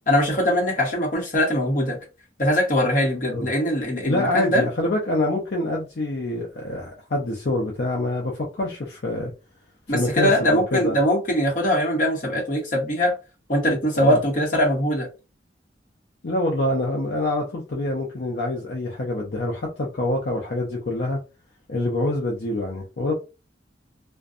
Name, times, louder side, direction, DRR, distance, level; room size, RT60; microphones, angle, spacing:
voice 1, 0.1-2.0 2.4-4.6 9.9-13.1 13.5-15.1, equal, 45° left, 1.0 m, -21 dB
voice 2, 4.0-9.3 9.9-11.0 14.0-14.2 16.2-21.2 21.7-23.1, left 1 dB, 65° left, 0.6 m, -26 dB
2.6 x 2.1 x 2.4 m
head